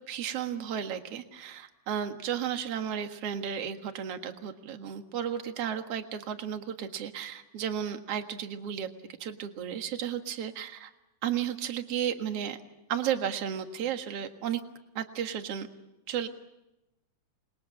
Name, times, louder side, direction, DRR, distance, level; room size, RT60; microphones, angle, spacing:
voice 1, 0.0-8.9 9.2-10.9 11.2-12.6 12.9-14.6 15.0-15.7 16.1-16.3, right 9 dB, 50° right, 6 dB, 2.2 m, -33 dB
28.5 x 21.5 x 8.7 m, 0.95 s
omnidirectional pair, 4.1 m